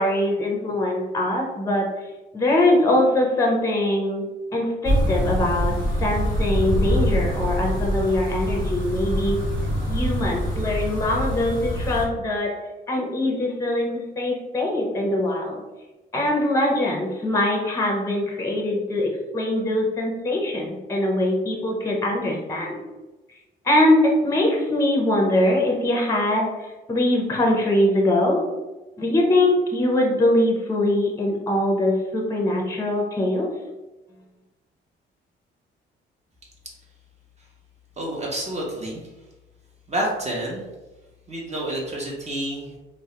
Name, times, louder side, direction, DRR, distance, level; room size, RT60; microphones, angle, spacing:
voice 1, 0.0-1.9 2.3-9.4 9.9-12.5 12.9-15.6 16.1-22.8 23.6-28.5 29.0-33.5, left 1 dB, 15° left, 0 dB, 0.5 m, -22 dB
sound 1, 4.8-12.1, equal, 70° right, 0.9 m, -24 dB
voice 2, 38.0-39.0 39.9-40.7 41.3-42.8, right 1 dB, 35° right, -3 dB, 0.6 m, -29 dB
2.2 x 2.0 x 2.8 m, 1.1 s
cardioid pair, 90°, 20 cm